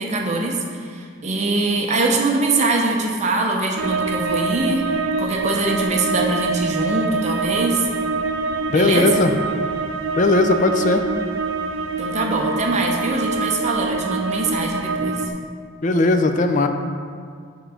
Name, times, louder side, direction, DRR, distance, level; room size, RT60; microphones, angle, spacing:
voice 1, 0.0-4.8 5.2-7.9 8.7-9.1 12.0-15.3, right 2 dB, 35° right, 1 dB, 0.6 m, -22 dB
sound 1, 3.8-15.3, right 4 dB, 85° right, 0.4 m, -25 dB
voice 2, 8.7-9.3 10.2-11.0 15.8-16.7, left 2 dB, 40° left, 7 dB, 0.4 m, -18 dB
7.0 x 3.7 x 5.7 m, 2.1 s
head